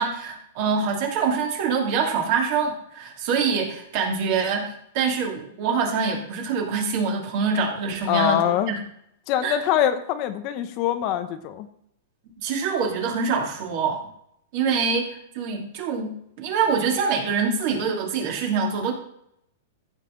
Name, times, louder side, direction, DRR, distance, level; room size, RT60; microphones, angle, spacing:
voice 1, 0.0-8.8 9.4-9.6 12.4-14.0 14.5-18.9, right 5 dB, 45° right, 1 dB, 2.7 m, -25 dB
voice 2, 8.1-8.7 9.3-11.7, left 11 dB, 35° left, 9 dB, 0.8 m, -23 dB
14.5 x 6.5 x 3.9 m, 0.71 s
supercardioid pair, 155°, 0 cm